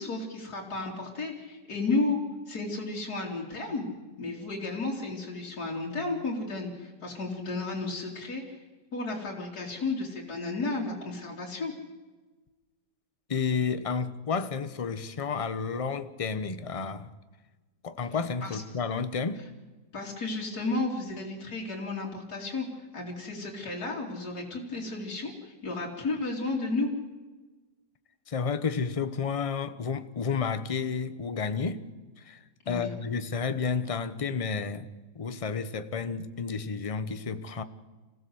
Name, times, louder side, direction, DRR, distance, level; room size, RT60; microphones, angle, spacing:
voice 1, 0.0-2.2 2.5-3.9 4.2-8.6 8.9-11.7 18.4-18.6 19.9-22.7 22.9-26.9 32.7-32.9, left 3 dB, 60° left, 3.6 m, -33 dB
voice 2, 13.3-17.1 17.8-19.4 28.3-31.8 32.2-32.4 32.7-34.9 35.1-37.6, left 5 dB, 30° left, 0.7 m, -31 dB
26.5 x 16.0 x 7.9 m
omnidirectional pair, 1.9 m